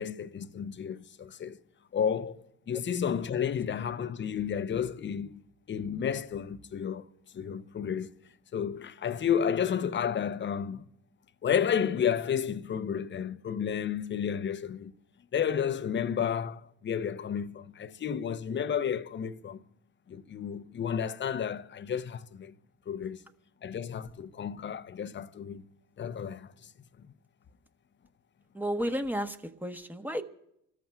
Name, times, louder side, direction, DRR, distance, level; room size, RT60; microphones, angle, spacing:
voice 1, 0.0-1.6 1.9-5.4 5.7-7.1 7.3-8.2 8.5-10.8 11.4-14.9 15.3-19.6 20.1-22.5 22.9-23.2 23.6-25.6 26.0-26.7, left 8 dB, 30° left, 0.7 m, -31 dB
voice 2, 28.5-30.2, equal, 5° right, 1.1 m, -32 dB
25.5 x 14.0 x 2.3 m
hypercardioid pair, 60°, 36 cm